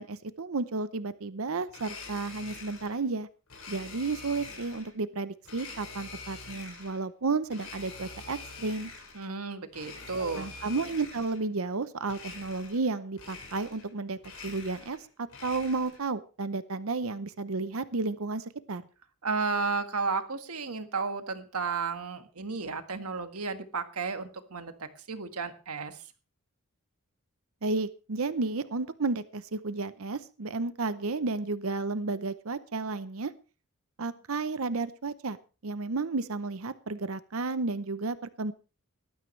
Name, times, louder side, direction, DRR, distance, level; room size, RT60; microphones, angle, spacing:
voice 1, 0.0-3.3 3.7-8.9 10.2-14.2 14.4-15.0 15.4-18.8 27.6-33.3 34.0-35.4 35.6-38.5, right 3 dB, 70° right, 13 dB, 0.8 m, -32 dB
Domestic sounds home sounds, 1.7-3.0 3.5-4.9 5.4-7.0 7.5-9.3 9.7-11.4 12.0-12.9 13.1-13.9 14.2-16.1, left 4 dB, 75° left, 6.8 m, -45 dB
voice 2, 9.1-10.5 19.2-26.0, right 4 dB, 90° right, 8 dB, 1.7 m, -33 dB
19.0 x 13.0 x 3.3 m, 0.34 s
head